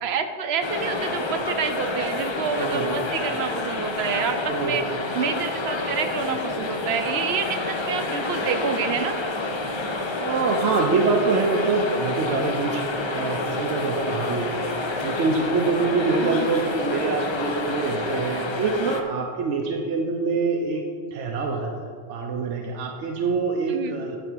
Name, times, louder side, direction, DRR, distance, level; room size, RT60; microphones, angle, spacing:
voice 1, 0.0-4.8 5.1-9.2 16.2-16.5 23.7-23.9, right 6 dB, 65° right, 8 dB, 0.8 m, -28 dB
sound 1, 0.6-19.0, left 2 dB, 35° left, 0.5 m, -28 dB
voice 2, 10.2-14.5 14.8-20.8 21.1-21.7 22.1-24.2, right 4 dB, 90° right, 2 dB, 1.0 m, -25 dB
10.0 x 3.5 x 6.1 m, 2.2 s
omnidirectional pair, 1.2 m